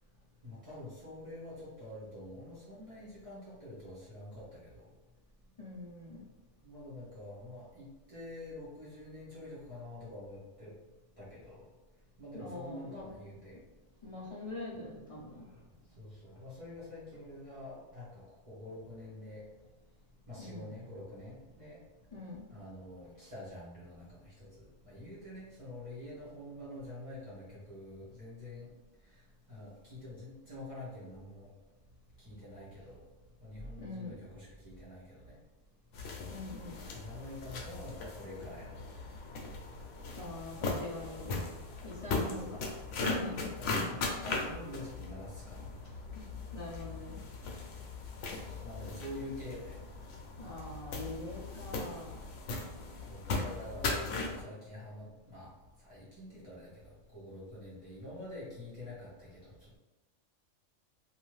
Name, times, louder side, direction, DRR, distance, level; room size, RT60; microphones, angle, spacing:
voice 1, 0.4-4.9 6.6-10.7 11.2-11.6 12.2-13.6 16.0-19.5 20.3-21.8 22.5-28.7 29.0-29.2 29.5-31.5 32.2-33.0 33.4-35.4 36.9-38.8 42.0-42.5 43.6-45.7 48.3-49.8 53.1-55.5 55.8-59.8, left 1 dB, 30° right, -10 dB, 0.9 m, -47 dB
voice 2, 5.6-6.2 12.3-13.1 14.0-15.5 20.4-20.7 22.1-22.5 33.8-34.2 36.3-36.8 40.1-41.5 41.8-43.5 46.1-47.2 50.4-52.1, left 2 dB, 45° left, -6 dB, 0.4 m, -44 dB
sound 1, 35.9-54.4, left 3 dB, 75° left, 0.9 m, -39 dB
2.6 x 2.4 x 3.1 m, 1.1 s
omnidirectional pair, 1.3 m